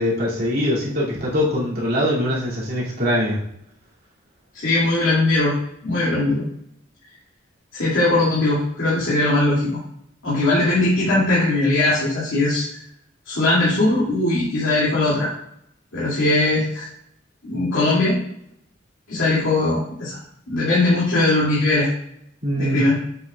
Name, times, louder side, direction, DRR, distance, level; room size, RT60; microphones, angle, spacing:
voice 1, 0.0-3.4 22.4-22.8, left 1 dB, 50° right, -6 dB, 2.5 m, -22 dB
voice 2, 4.5-5.6 5.8-6.4 7.7-9.8 10.2-12.7 13.3-15.3 15.9-16.9 17.4-18.2 19.1-20.2 20.5-21.9 22.6-23.0, left 2 dB, 75° left, -9 dB, 2.4 m, -20 dB
7.8 x 5.7 x 2.3 m, 0.74 s
head